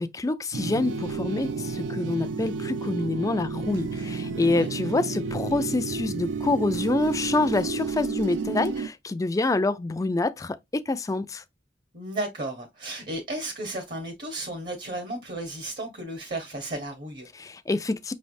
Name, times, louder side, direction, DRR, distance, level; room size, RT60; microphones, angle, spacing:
voice 1, 0.0-10.6 10.9-11.4 17.4-18.1, left 2 dB, 20° left, 0.4 m, -26 dB
sound 1, 0.5-8.9, right 4 dB, 90° right, 0.5 m, -31 dB
voice 2, 11.9-17.3, right 1 dB, 50° right, 1.0 m, -34 dB
5.4 x 3.2 x 2.6 m
head